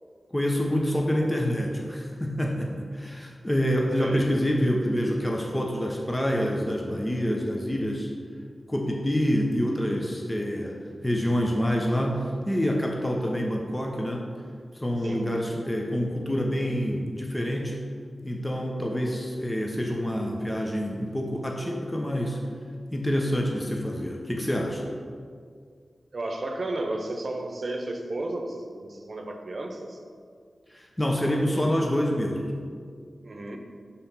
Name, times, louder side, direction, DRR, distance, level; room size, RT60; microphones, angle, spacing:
voice 1, 0.3-8.1 8.7-10.8 11.0-14.3 14.7-17.8 18.2-22.4 22.9-24.9 30.7-32.5, equal, 20° left, 0 dB, 1.0 m, -27 dB
voice 2, 26.1-30.0 33.2-33.6, right 2 dB, 60° right, 4 dB, 0.8 m, -33 dB
5.7 x 4.2 x 5.7 m, 2.1 s
cardioid pair, 40°, 0 cm